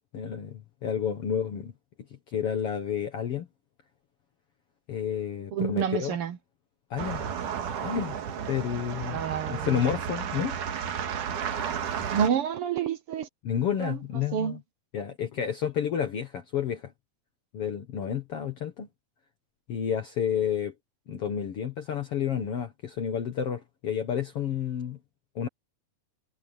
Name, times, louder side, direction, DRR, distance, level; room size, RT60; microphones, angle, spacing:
voice 1, 0.1-1.7 2.3-3.5 4.9-6.2 6.9-7.2 7.8-8.2 8.5-9.2 9.5-10.6 13.4-14.6 14.9-16.9 17.5-18.9 19.7-20.7 21.1-25.0 25.4-25.5, left 8 dB, 55° left, 2.2 m, -30 dB
voice 2, 5.5-6.4 9.1-9.8 12.1-13.3 13.8-14.0 14.3-14.6, right 8 dB, 60° right, 1.6 m, -28 dB
sound 1, 7.0-12.3, right 7 dB, 85° right, 3.4 m, -33 dB
omnidirectional pair, 3.5 m